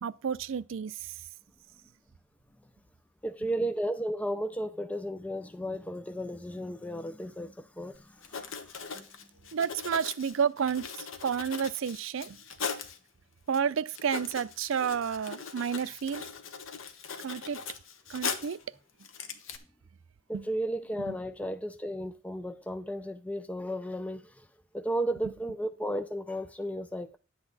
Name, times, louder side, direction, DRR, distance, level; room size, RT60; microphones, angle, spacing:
voice 1, 0.0-1.0 9.5-10.8 11.2-12.4 13.5-16.2 17.2-17.6 18.1-18.6 20.3-20.4 21.0-21.1, right 7 dB, 75° right, 0.4 m, -30 dB
voice 2, 3.2-8.6 8.9-9.1 20.3-24.5 24.7-27.2, right 1 dB, 5° left, 0.4 m, -34 dB
Writing, 7.9-8.0 8.2-13.0 13.5-13.6 13.9-18.6 19.0-19.6, left 6 dB, 75° left, 1.1 m, -39 dB
10.5 x 8.0 x 4.0 m
head